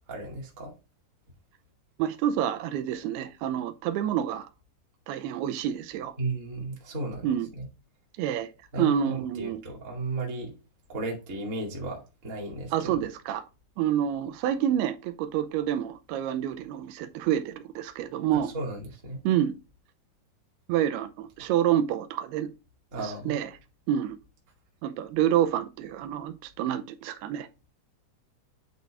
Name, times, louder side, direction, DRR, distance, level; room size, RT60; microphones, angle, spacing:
voice 1, 0.1-0.7 6.2-7.7 8.7-10.5 10.9-13.0 18.5-19.2 22.9-23.4, right 2 dB, 30° right, 1.5 m, -35 dB
voice 2, 2.0-4.5 5.1-6.1 7.2-7.5 8.2-8.5 8.8-9.6 12.7-13.4 13.8-18.5 19.2-19.5 20.7-22.5 23.0-23.5 23.9-24.2 24.8-27.5, right 10 dB, 90° right, 2.6 m, -28 dB
9.3 x 4.1 x 3.4 m
omnidirectional pair, 4.5 m